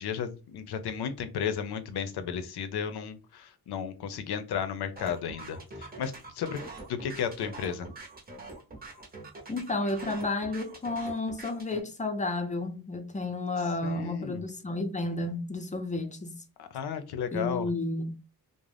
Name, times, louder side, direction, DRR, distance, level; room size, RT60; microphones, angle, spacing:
voice 1, 0.0-6.6 6.9-7.9 13.8-14.4 16.6-17.7, left 7 dB, 80° left, 0.6 m, -34 dB
sound 1, 5.0-11.8, right 2 dB, 25° right, 0.6 m, -44 dB
voice 2, 9.5-16.4 17.3-18.1, left 2 dB, 20° left, 0.4 m, -32 dB
2.5 x 2.0 x 3.3 m
cardioid pair, 100°, 38 cm